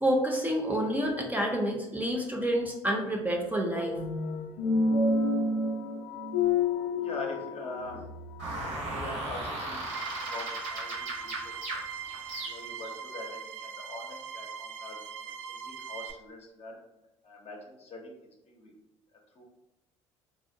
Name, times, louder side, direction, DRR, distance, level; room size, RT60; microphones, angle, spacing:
voice 1, 0.0-4.0, equal, 10° right, 0 dB, 0.5 m, -28 dB
sound 1, 3.7-8.7, left 3 dB, 75° left, 0.4 m, -29 dB
voice 2, 7.0-8.0 8.8-9.8 10.1-11.8 12.4-16.8 17.2-18.7 19.4-19.5, left 2 dB, 40° left, 1 dB, 0.7 m, -43 dB
sound 2, 8.4-12.9, right 2 dB, 85° right, 0.9 m, -37 dB
sound 3, 9.8-16.1, right 7 dB, 65° right, 0.4 m, -41 dB
2.8 x 2.0 x 2.6 m, 0.93 s
hypercardioid pair, 55°, 15 cm